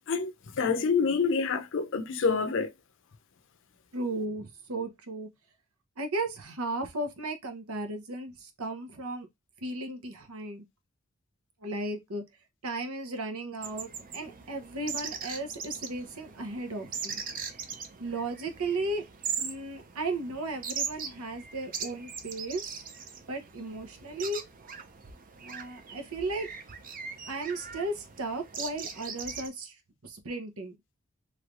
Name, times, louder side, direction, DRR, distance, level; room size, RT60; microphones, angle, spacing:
voice 1, 0.1-2.7, left 5 dB, 60° left, 0.6 m, -27 dB
voice 2, 3.9-5.3 6.0-9.3 9.6-10.6 11.6-12.2 12.6-17.2 18.0-19.1 19.4-22.6 23.3-24.4 25.4-26.5 27.3-30.8, right 2 dB, 85° right, 0.9 m, -35 dB
sound 1, 13.6-29.5, right 6 dB, 40° right, 0.6 m, -40 dB
3.2 x 3.2 x 2.4 m
head